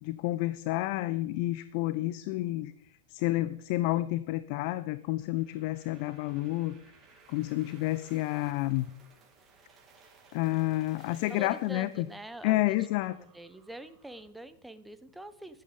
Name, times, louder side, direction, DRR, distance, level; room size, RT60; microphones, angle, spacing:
voice 1, 0.0-6.8 7.3-8.9 10.3-12.1 12.4-13.2, left 17 dB, 50° left, 15 dB, 0.6 m, -30 dB
sound 1, 4.5-14.3, right 4 dB, 25° right, 3.3 m, -60 dB
voice 2, 11.3-12.8 13.3-15.6, right 1 dB, 5° right, 12 dB, 1.1 m, -45 dB
14.5 x 11.5 x 5.3 m, 0.72 s
figure-of-eight pair, 90°, 0 cm